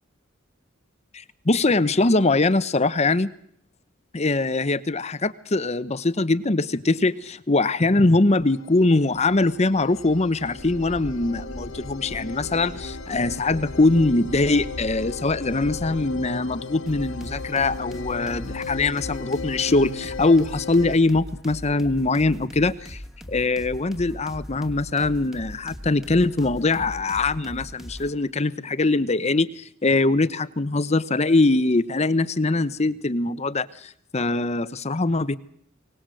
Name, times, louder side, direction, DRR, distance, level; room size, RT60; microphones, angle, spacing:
voice 1, 1.1-3.3 4.1-23.0 23.3-35.4, left 2 dB, 30° left, 15 dB, 0.9 m, -22 dB
sound 1, 8.5-21.0, left 3 dB, 70° left, 1.5 m, -36 dB
sound 2, 10.6-16.3, equal, 40° right, 3.2 m, -41 dB
sound 3, 16.9-28.1, equal, ahead, 1.9 m, -40 dB
24.0 x 18.5 x 7.7 m, 0.65 s
head